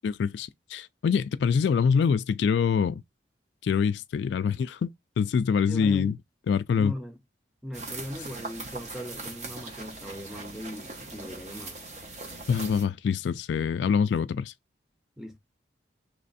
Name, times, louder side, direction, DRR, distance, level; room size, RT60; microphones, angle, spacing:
voice 1, 0.0-3.0 3.6-4.9 5.2-6.2 6.5-6.9 12.5-14.5, left 6 dB, 70° left, 0.3 m, -25 dB
voice 2, 5.7-6.1 6.8-7.2 7.6-11.8 15.2-15.4, equal, ahead, 0.6 m, -39 dB
sound 1, 7.7-12.8, right 3 dB, 40° right, 0.9 m, -40 dB
3.3 x 3.2 x 4.0 m
head